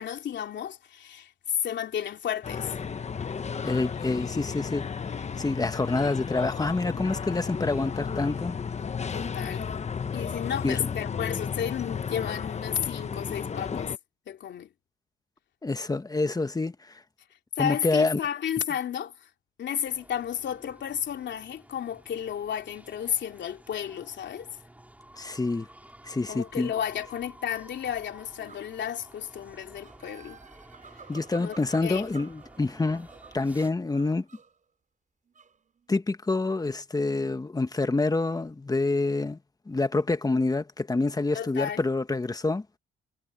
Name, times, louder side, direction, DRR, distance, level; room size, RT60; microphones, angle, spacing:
voice 1, 0.0-2.8 9.1-9.7 10.1-13.9 14.3-14.7 17.6-19.3 19.6-24.5 26.3-30.4 31.4-31.6 31.8-32.1 41.3-41.8, left 9 dB, 65° left, 3.1 m, -32 dB
sound 1, 2.4-14.0, left 6 dB, 35° left, 1.1 m, -33 dB
voice 2, 3.6-4.9 5.4-8.5 10.6-10.8 15.6-16.7 17.6-18.2 25.2-25.7 26.0-26.7 31.1-33.1 33.3-34.2 35.9-39.4 39.7-42.6, left 3 dB, 20° left, 1.6 m, -27 dB
sound 2, 19.8-33.7, right 1 dB, 5° right, 4.7 m, -52 dB
sound 3, 28.2-28.9 29.4-34.6 35.2-36.0, right 5 dB, 40° right, 7.7 m, -51 dB
cardioid pair, 90°, 20 cm